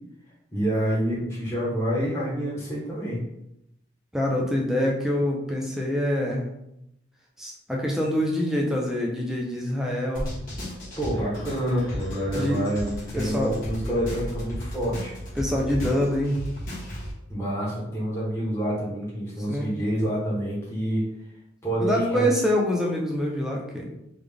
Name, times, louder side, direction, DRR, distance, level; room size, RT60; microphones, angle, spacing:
voice 1, 0.5-3.2 11.0-15.1 17.3-21.0 21.6-22.3, equal, 15° left, -7 dB, 1.0 m, -27 dB
voice 2, 4.1-6.5 7.4-10.3 12.3-12.6 13.1-13.5 15.4-16.4 19.5-19.7 21.8-23.8, left 1 dB, ahead, -2 dB, 0.6 m, -25 dB
sound 1, 10.1-17.1, equal, 45° left, 1.4 m, -34 dB
3.8 x 2.4 x 3.4 m, 0.83 s
head